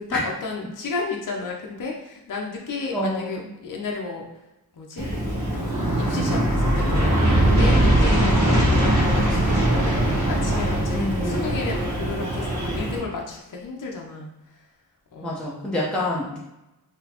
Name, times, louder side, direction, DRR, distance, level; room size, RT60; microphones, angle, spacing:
voice 1, 0.0-4.3 4.7-5.1 5.5-5.7 6.0-12.5 12.7-14.3 15.1-15.5, left 4 dB, 55° left, -1 dB, 0.6 m, -32 dB
voice 2, 2.9-3.4 8.1-8.6 10.9-11.6 15.2-16.4, left 1 dB, ahead, -6 dB, 0.7 m, -27 dB
Aircraft, 5.0-13.0, right 1 dB, 50° right, 1.0 m, -21 dB
3.9 x 2.9 x 2.9 m, 0.92 s
wide cardioid pair, 85°, 38 cm